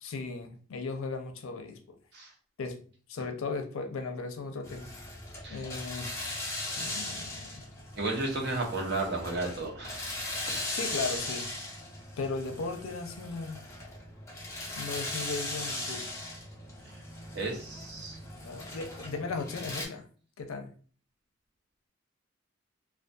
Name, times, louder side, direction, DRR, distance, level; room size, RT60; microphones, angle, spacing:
voice 1, 0.0-1.8 2.6-2.8 3.1-4.9 5.5-6.2 6.8-7.6 10.7-11.5 12.2-13.6 14.8-16.0 18.4-20.0 20.4-20.7, left 4 dB, 90° left, 6 dB, 0.5 m, -36 dB
sound 1, 4.6-19.9, left 2 dB, 15° left, 0.6 m, -39 dB
voice 2, 8.0-10.1 10.5-10.7 17.3-18.2, right 2 dB, 55° right, 0 dB, 0.7 m, -33 dB
2.5 x 2.3 x 2.2 m, 0.42 s
head